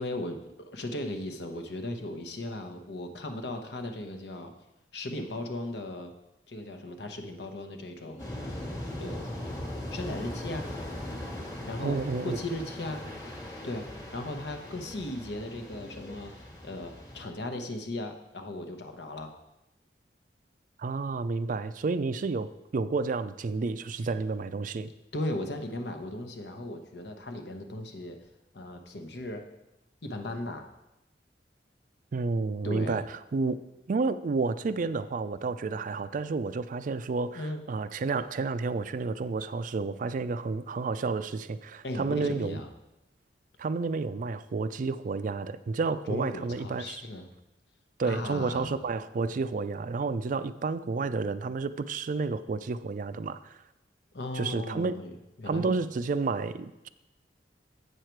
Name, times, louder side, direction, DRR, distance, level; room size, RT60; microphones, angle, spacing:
voice 1, 0.0-4.5 4.9-6.1 6.5-8.4 9.0-9.3 9.9-10.8 11.7-13.1 13.6-19.3 25.1-28.2 28.5-29.5 30.0-30.7 32.6-33.0 37.3-37.7 41.8-42.7 46.1-47.3 48.0-48.8 54.1-55.1 55.4-55.7, left 1 dB, 70° left, 6 dB, 0.9 m, -37 dB
Bird, 8.1-17.7, left 2 dB, 35° left, 0.5 m, -53 dB
sound 1, 8.2-17.3, left 1 dB, 20° left, 1.3 m, -39 dB
voice 2, 11.8-12.4 20.8-24.9 32.1-33.6 33.9-42.6 43.6-47.0 48.0-53.6 54.3-54.9 55.4-56.9, right 4 dB, 50° right, 13 dB, 0.4 m, -30 dB
8.2 x 6.5 x 4.5 m, 0.92 s
head